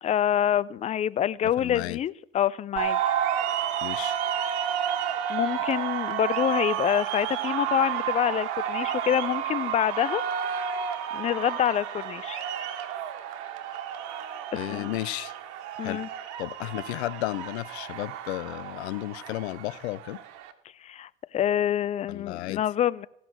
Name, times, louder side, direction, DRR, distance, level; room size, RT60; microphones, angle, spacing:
voice 1, 0.0-3.0 5.3-10.2 11.1-12.4 14.7-14.9 15.8-16.1 20.8-23.1, left 10 dB, 20° left, 0.4 m, -26 dB
voice 2, 1.4-2.0 3.8-4.2 14.5-15.3 15.8-16.1 16.4-20.2 22.1-22.6, left 18 dB, 75° left, 0.5 m, -33 dB
sound 1, 2.8-20.5, right 9 dB, 60° right, 1.4 m, -31 dB
16.5 x 5.9 x 7.8 m
hypercardioid pair, 80°, 33 cm